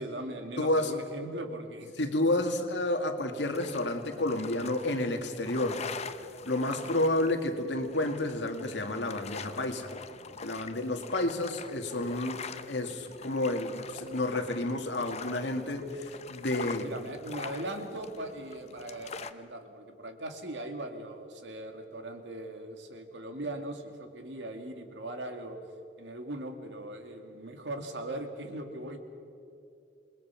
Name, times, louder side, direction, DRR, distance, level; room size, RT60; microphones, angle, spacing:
voice 1, 0.0-1.9 6.7-7.0 16.8-25.6 26.0-29.0, right 1 dB, 85° right, 5 dB, 2.3 m, -39 dB
voice 2, 0.6-0.9 2.0-5.8 6.5-9.9 10.4-16.9, left 1 dB, 80° left, 5 dB, 2.1 m, -30 dB
sound 1, 3.3-19.3, left 5 dB, 40° left, 0.8 m, -44 dB
28.0 x 20.5 x 5.8 m, 2.6 s
head